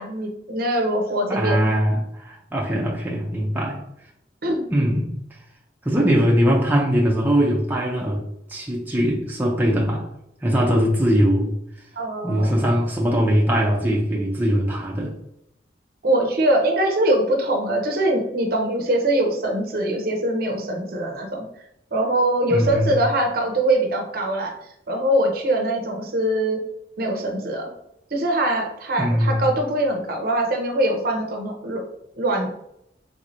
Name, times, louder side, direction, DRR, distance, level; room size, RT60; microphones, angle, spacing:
voice 1, 0.0-1.7 4.4-4.6 12.0-12.5 16.0-21.4 21.9-24.5 24.9-26.6 27.0-27.7 28.1-31.8 32.2-32.6, right 1 dB, 55° right, 2 dB, 0.6 m, -22 dB
voice 2, 1.3-3.8 4.7-5.1 5.8-8.2 8.5-10.0 10.4-11.5 12.2-15.1 22.5-23.0 29.0-29.5, equal, 10° right, -3 dB, 0.5 m, -21 dB
3.3 x 3.1 x 2.6 m, 0.78 s
head